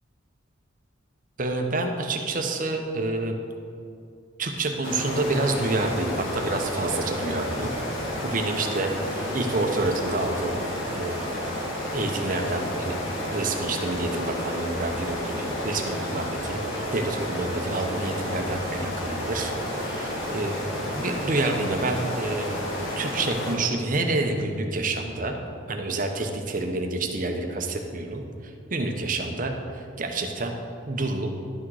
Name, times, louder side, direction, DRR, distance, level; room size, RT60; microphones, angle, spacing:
voice 1, 1.4-3.4 4.4-7.7 8.2-10.6 10.9-11.3 11.9-13.0 13.3-22.6 23.0-25.4 25.7-30.6 30.9-31.3, right 2 dB, 45° right, 4 dB, 0.9 m, -28 dB
sound 1, 4.8-23.6, equal, 85° left, 2.0 m, -31 dB
11.5 x 6.3 x 4.8 m, 2.5 s
head